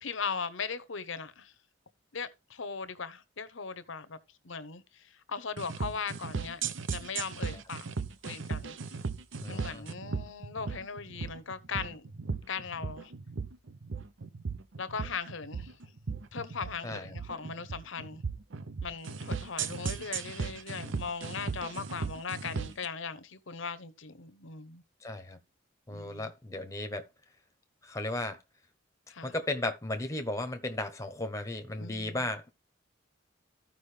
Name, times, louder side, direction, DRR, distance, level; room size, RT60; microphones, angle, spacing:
voice 1, 0.0-1.5 2.1-4.2 4.4-6.6 6.9-7.9 8.2-8.7 9.5-12.1 12.5-13.1 14.8-15.7 16.3-18.2 18.8-24.8 25.9-26.3 29.1-29.3 31.8-32.2, left 5 dB, 70° left, 0.8 m, -39 dB
sound 1, 5.6-22.9, right 5 dB, 65° right, 0.6 m, -37 dB
voice 2, 9.4-9.8 16.8-17.2 25.0-25.4 25.9-27.1 27.8-28.4 29.2-32.5, left 2 dB, 15° left, 0.9 m, -35 dB
14.0 x 5.2 x 3.3 m
head